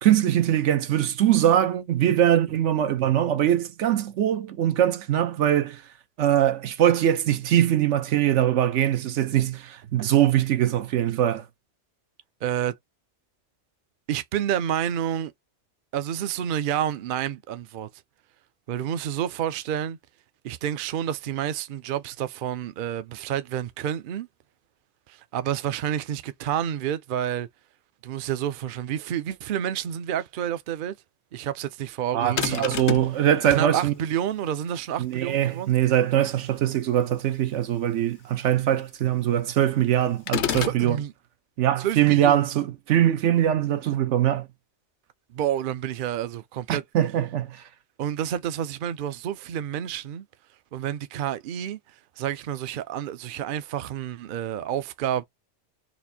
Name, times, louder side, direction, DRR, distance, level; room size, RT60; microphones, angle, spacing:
voice 1, 0.0-5.8 6.2-11.4 32.1-33.9 35.0-41.0 41.6-44.5 46.7-47.6, right 11 dB, 85° right, 1.0 m, -22 dB
voice 2, 12.4-12.7 14.1-15.3 15.9-17.9 18.7-20.0 20.4-24.3 25.1-27.5 28.0-31.0 31.3-32.6 33.5-35.7 40.6-41.1 41.8-42.4 45.3-46.8 48.0-50.3 50.7-55.2, right 10 dB, 60° right, 0.6 m, -29 dB
sound 1, 32.4-33.2 40.3-40.8, left 10 dB, 70° left, 0.9 m, -28 dB
4.1 x 2.5 x 2.6 m
omnidirectional pair, 1.2 m